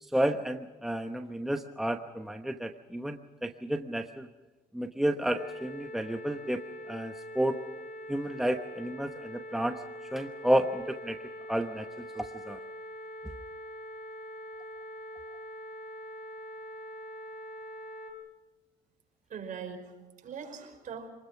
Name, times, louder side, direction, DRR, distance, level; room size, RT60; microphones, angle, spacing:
voice 1, 0.0-4.3 4.7-6.6 6.9-7.6 8.1-9.8 10.1-11.2 11.5-11.9 12.1-12.6, right 1 dB, ahead, 5 dB, 1.0 m, -31 dB
sound 1, 5.3-18.1, equal, 60° left, 4.3 m, -43 dB
voice 2, 19.3-21.1, right 6 dB, 50° right, 4 dB, 5.1 m, -41 dB
26.0 x 20.5 x 6.0 m, 1.1 s
cardioid pair, 110°, 17 cm